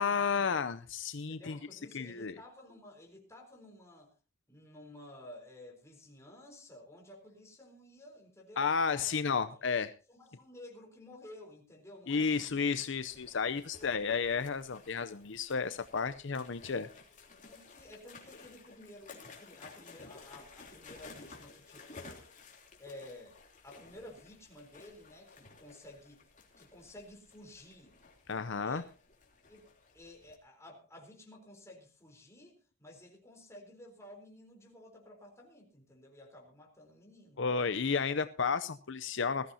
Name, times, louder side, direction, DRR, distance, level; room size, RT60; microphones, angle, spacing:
voice 1, 0.0-1.6 1.9-2.3 8.6-9.9 12.1-16.9 28.3-28.8 37.4-39.5, left 5 dB, 60° left, 0.6 m, -32 dB
voice 2, 1.1-4.1 4.5-9.1 9.5-9.6 10.1-12.6 13.6-14.3 17.5-22.3 22.8-23.4 23.6-26.3 26.6-27.9 28.6-28.8 29.5-37.4, left 1 dB, 15° left, 4.0 m, -53 dB
sound 1, 12.9-30.4, left 4 dB, 40° left, 3.2 m, -55 dB
20.5 x 14.0 x 2.8 m
head